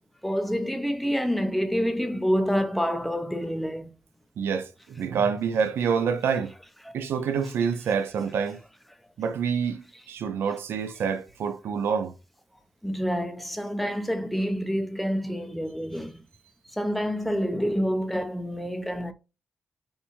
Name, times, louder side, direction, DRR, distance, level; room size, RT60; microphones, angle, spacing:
voice 1, 0.2-3.9 6.9-7.0 12.8-16.2 16.7-19.1, equal, ahead, 0.4 m, -27 dB
voice 2, 4.4-6.5 6.9-8.6 9.2-12.1, right 6 dB, 85° right, 0.5 m, -27 dB
3.5 x 2.6 x 2.8 m
wide cardioid pair, 170°, 4 cm